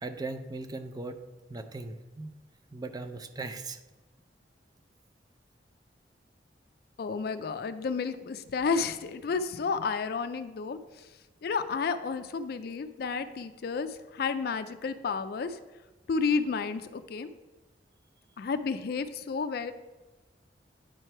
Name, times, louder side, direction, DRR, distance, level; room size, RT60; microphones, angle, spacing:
voice 1, 0.0-1.2 1.5-2.3 2.7-3.8, right 3 dB, 20° right, 8 dB, 0.4 m, -38 dB
voice 2, 7.0-11.1 11.4-15.6 16.1-17.3 18.4-19.7, left 5 dB, 60° left, 11 dB, 0.4 m, -31 dB
8.9 x 3.3 x 4.4 m, 1.1 s
head